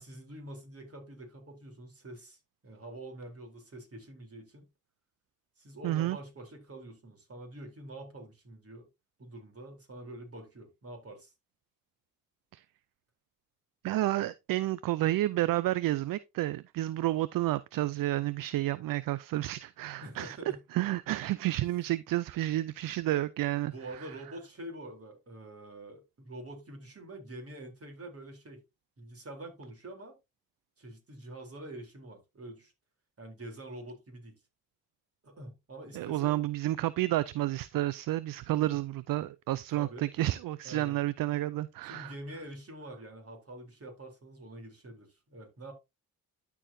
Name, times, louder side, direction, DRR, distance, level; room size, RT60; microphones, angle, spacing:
voice 1, 0.0-4.7 5.6-8.9 9.2-11.3 20.0-20.6 23.7-28.6 29.0-30.2 30.8-32.7 33.2-34.4 35.2-36.4 39.7-40.1 40.6-41.0 41.8-45.7, right 1 dB, 40° right, 3.5 m, -46 dB
voice 2, 5.8-6.2 12.5-12.6 13.8-20.4 20.7-23.7 35.9-42.1, right 15 dB, 65° right, 0.5 m, -30 dB
12.5 x 4.7 x 2.7 m
supercardioid pair, 55°, 37 cm